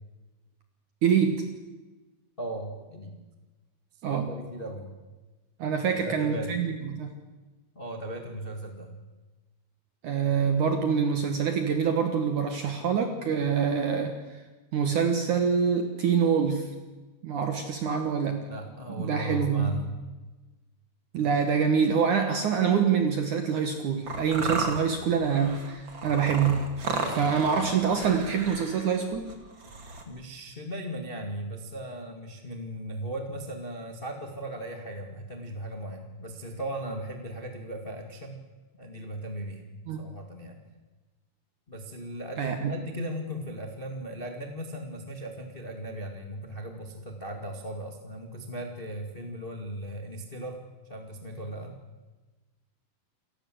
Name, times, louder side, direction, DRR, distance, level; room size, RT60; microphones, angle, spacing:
voice 1, 1.0-1.5 4.0-4.3 5.6-7.2 10.0-14.4 14.7-16.7 17.2-18.5 19.0-19.7 21.1-26.7 27.1-29.3 39.9-40.1 42.4-42.7, right 6 dB, 65° right, 6 dB, 1.9 m, -26 dB
voice 2, 2.4-3.2 3.9-4.9 5.9-6.7 7.7-8.9 18.5-19.9 29.6-29.8 30.0-38.4 38.7-39.6 40.0-40.6 41.7-51.8, right 1 dB, 70° left, 4 dB, 0.5 m, -37 dB
sound 1, 24.1-30.0, right 3 dB, 35° right, 2.2 m, -34 dB
28.5 x 15.0 x 7.8 m, 1.2 s
omnidirectional pair, 5.5 m